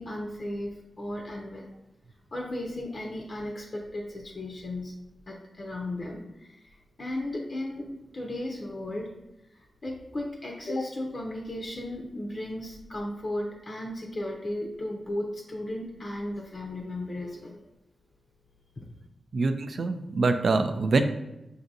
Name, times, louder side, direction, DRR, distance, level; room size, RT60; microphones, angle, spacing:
voice 1, 0.0-1.7 2.3-4.9 5.3-6.7 7.0-9.1 9.5-17.6 18.8-18.9, left 1 dB, 40° left, 0 dB, 0.5 m, -35 dB
voice 2, 19.3-21.0, right 3 dB, 60° right, 8 dB, 0.3 m, -25 dB
6.0 x 2.6 x 2.6 m, 0.92 s
wide cardioid pair, 100°, 0 cm